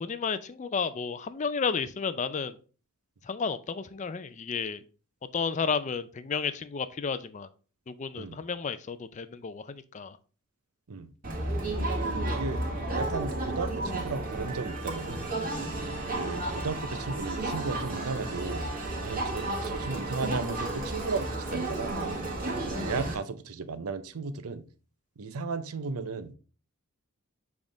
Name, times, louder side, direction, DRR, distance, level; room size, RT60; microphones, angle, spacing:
voice 1, 0.0-2.6 3.2-4.8 5.3-7.5 7.9-10.2, left 5 dB, 30° left, 0.4 m, -32 dB
Crowd, 11.2-23.1, right 2 dB, 40° right, 1.5 m, -32 dB
voice 2, 12.3-12.6 12.9-15.3 16.1-18.6 19.0-22.0 22.5-24.6 25.2-26.3, right 4 dB, 80° right, 0.6 m, -35 dB
7.2 x 3.6 x 3.8 m
head